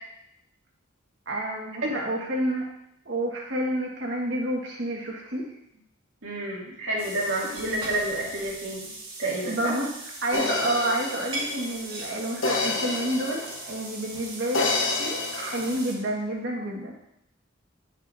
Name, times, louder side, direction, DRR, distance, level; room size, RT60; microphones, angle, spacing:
voice 1, 1.3-2.7 3.1-5.5 9.4-9.9 10.2-14.6 15.0-16.9, right 1 dB, 60° right, -1 dB, 1.7 m, -29 dB
voice 2, 6.2-8.9 9.2-9.8, right 1 dB, 80° right, -5 dB, 2.5 m, -29 dB
sound 1, 7.0-15.9, right 2 dB, 25° right, 1.8 m, -39 dB
sound 2, 10.3-13.8 14.5-15.8, left 3 dB, 70° left, 1.1 m, -29 dB
10.0 x 7.4 x 2.7 m, 0.79 s
head